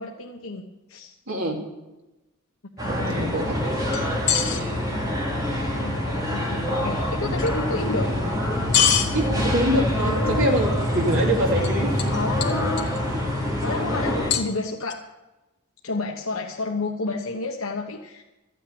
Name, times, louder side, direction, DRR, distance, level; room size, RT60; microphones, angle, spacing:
voice 1, 0.0-1.1 2.8-3.3 5.5-8.1 10.0-10.5 12.1-12.9 13.6-15.0 15.8-18.2, left 3 dB, 75° left, 1 dB, 1.1 m, -30 dB
voice 2, 1.3-1.6 2.9-3.6 7.8-8.1 9.1-12.3 13.6-14.0, equal, 70° right, 0 dB, 2.9 m, -25 dB
sound 1, 2.8-14.3, equal, 15° right, 2.8 m, -25 dB
sound 2, 3.9-4.6 7.4-7.5 8.7-9.1 11.6-11.7 12.0-12.1 12.4-13.0 14.3-14.9, left 9 dB, 55° left, 1.7 m, -22 dB
14.0 x 9.1 x 8.6 m, 1.0 s
head